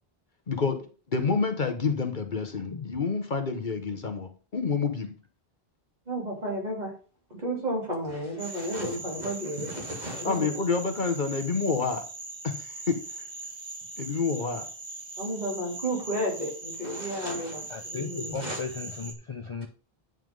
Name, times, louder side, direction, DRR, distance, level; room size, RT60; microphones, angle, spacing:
voice 1, 0.5-5.1 10.2-12.0 12.4-13.0 14.0-14.7, left 4 dB, 50° left, 7 dB, 1.2 m, -28 dB
voice 2, 6.1-6.9 7.3-10.5 15.2-18.6, right 1 dB, 45° right, -1 dB, 3.4 m, -32 dB
sound 1, 8.4-19.1, right 2 dB, 25° right, 1.4 m, -40 dB
voice 3, 17.7-19.7, left 5 dB, 35° left, 8 dB, 0.6 m, -36 dB
9.3 x 5.7 x 5.4 m, 0.37 s
omnidirectional pair, 1.0 m